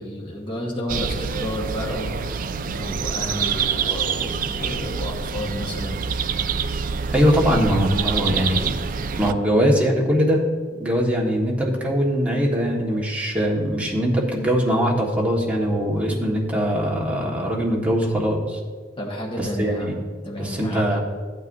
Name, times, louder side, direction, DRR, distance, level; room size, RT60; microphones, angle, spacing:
voice 1, 0.0-6.0 19.0-20.0 20.2-21.0, left 1 dB, 30° left, -2 dB, 1.4 m, -31 dB
sound 1, 0.9-9.3, right 6 dB, 50° right, 0.4 m, -26 dB
voice 2, 7.1-8.7 9.2-10.4 10.8-18.6 19.4-19.9 20.4-21.0, equal, 10° right, -4 dB, 1.7 m, -21 dB
14.5 x 9.2 x 2.7 m, 1.5 s
head